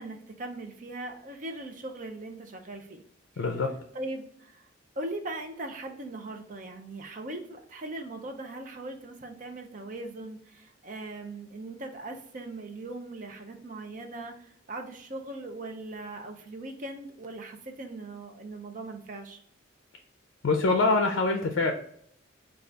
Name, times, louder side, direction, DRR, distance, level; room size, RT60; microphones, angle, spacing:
voice 1, 0.0-3.0 3.3-3.5 3.9-4.7 5.0-19.4, right 2 dB, 40° right, 4 dB, 0.5 m, -40 dB
voice 2, 3.4-3.7 20.4-21.7, left 3 dB, 75° left, 3 dB, 0.4 m, -24 dB
3.8 x 2.3 x 3.3 m, 0.66 s
head